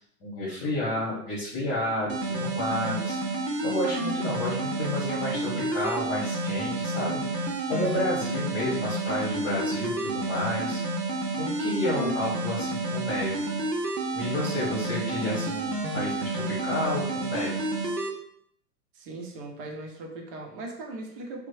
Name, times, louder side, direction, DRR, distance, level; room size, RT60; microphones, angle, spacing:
voice 1, 0.2-3.2 3.6-10.8 11.4-13.3 14.1-17.5, left 1 dB, 35° left, -7 dB, 1.1 m, -31 dB
sound 1, 2.1-18.1, right 2 dB, 75° right, 0.6 m, -30 dB
voice 2, 18.9-21.5, right 2 dB, 35° right, 1 dB, 0.6 m, -39 dB
2.9 x 2.1 x 2.6 m, 0.69 s
figure-of-eight pair, 100°, 49 cm